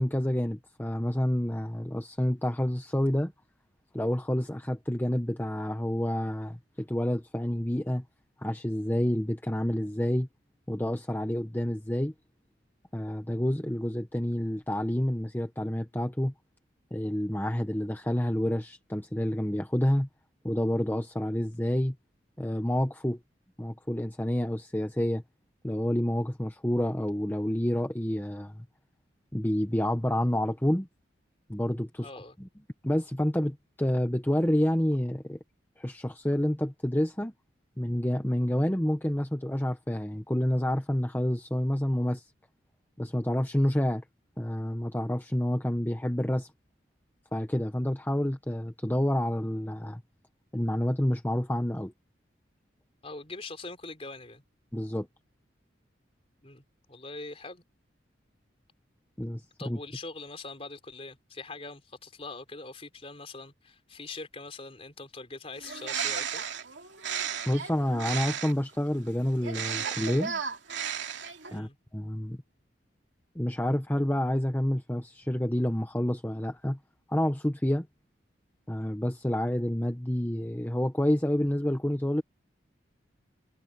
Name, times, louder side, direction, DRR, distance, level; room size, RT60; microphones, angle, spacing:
voice 1, 0.0-3.3 3.9-8.0 8.4-10.3 10.7-12.1 12.9-16.3 16.9-20.1 20.4-21.9 22.4-23.2 23.6-25.2 25.6-28.6 29.3-30.9 31.5-32.1 32.4-32.5 32.8-35.4 35.8-37.3 37.8-42.3 43.0-44.0 44.4-46.5 47.3-50.0 50.5-51.9 54.7-55.1 59.2-59.8 67.5-70.4 71.5-72.4 73.3-76.8 77.1-77.9 78.7-82.2, equal, 10° left, 1.0 m, -28 dB
voice 2, 32.0-32.4 53.0-54.4 56.4-56.6 56.9-57.6 59.6-66.4 71.5-71.8, left 3 dB, 30° left, 4.0 m, -42 dB
Bird, 65.6-68.7 69.4-71.6, right 7 dB, 75° right, 2.8 m, -34 dB
head